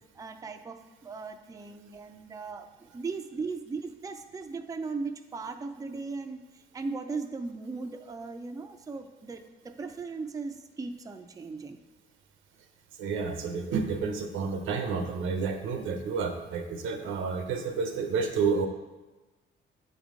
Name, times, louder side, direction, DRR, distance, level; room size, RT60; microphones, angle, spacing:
voice 1, 0.1-6.5 6.7-11.8, right 4 dB, 15° right, 6 dB, 0.4 m, -38 dB
voice 2, 13.0-18.7, right 5 dB, 90° right, 6 dB, 0.7 m, -30 dB
7.7 x 3.6 x 3.7 m, 1.1 s
cardioid pair, 90°, 20 cm